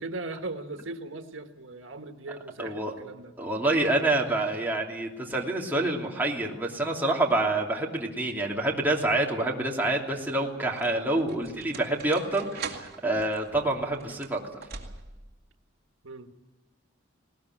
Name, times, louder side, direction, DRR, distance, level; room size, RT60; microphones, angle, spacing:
voice 1, 0.0-3.3 4.3-4.4 13.9-14.1 16.0-16.3, right 2 dB, 90° right, 6 dB, 1.6 m, -39 dB
voice 2, 2.6-2.9 3.4-14.4, right 2 dB, 10° right, -2 dB, 2.9 m, -27 dB
sound 1, 10.1-15.3, right 5 dB, 55° right, 2.7 m, -43 dB
20.0 x 19.0 x 9.2 m, 1.0 s
head